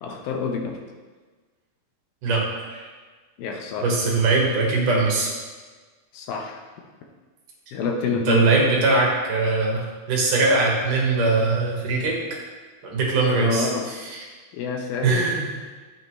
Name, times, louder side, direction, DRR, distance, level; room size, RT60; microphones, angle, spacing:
voice 1, 0.0-0.8 3.4-3.9 6.1-6.6 7.7-8.6 13.4-13.9 14.5-15.3, left 4 dB, 75° left, 2 dB, 2.6 m, -27 dB
voice 2, 3.8-5.3 8.3-12.2 12.8-14.2 15.0-15.6, right 3 dB, 60° right, -2 dB, 2.9 m, -21 dB
12.0 x 8.7 x 3.2 m, 1.4 s
omnidirectional pair, 4.3 m